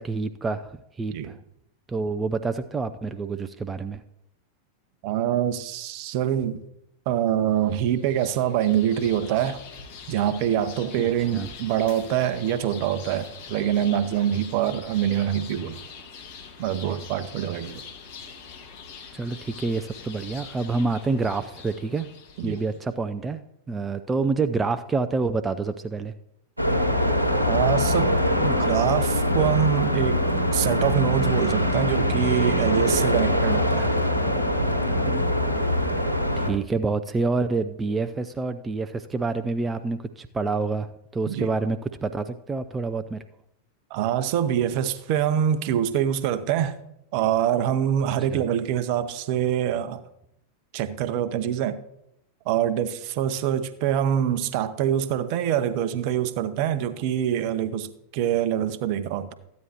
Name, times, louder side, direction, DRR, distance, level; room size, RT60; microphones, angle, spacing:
voice 1, 0.0-1.4 1.9-4.0 11.0-11.5 19.1-22.1 22.4-23.4 23.7-26.1 36.4-43.2 48.3-48.4, right 3 dB, 15° right, 0.5 m, -27 dB
voice 2, 5.0-6.6 7.1-9.6 10.1-15.8 16.6-17.8 22.4-22.6 27.5-30.2 30.5-33.9 35.0-35.3 41.3-41.5 43.9-46.8 47.1-50.0 50.7-51.8 52.5-59.3, right 10 dB, 45° right, 0.8 m, -25 dB
sound 1, 7.7-22.8, left 6 dB, 50° left, 1.7 m, -44 dB
sound 2, 26.6-36.5, left 1 dB, 90° right, 1.2 m, -23 dB
14.0 x 9.4 x 3.0 m
figure-of-eight pair, 90°, 0 cm